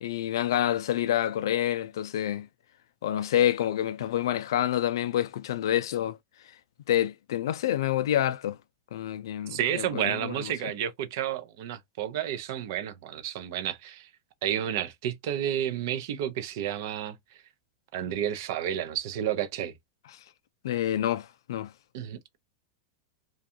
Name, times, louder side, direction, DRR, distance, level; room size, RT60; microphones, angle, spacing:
voice 1, 0.0-2.5 3.0-6.2 6.9-8.6 8.9-10.5 20.6-21.7, left 11 dB, 80° left, 0.3 m, -27 dB
voice 2, 9.5-14.1 14.4-17.1 17.9-19.7 21.9-22.4, right 10 dB, 50° right, 0.4 m, -31 dB
2.4 x 2.2 x 2.7 m
supercardioid pair, 175°, 2 cm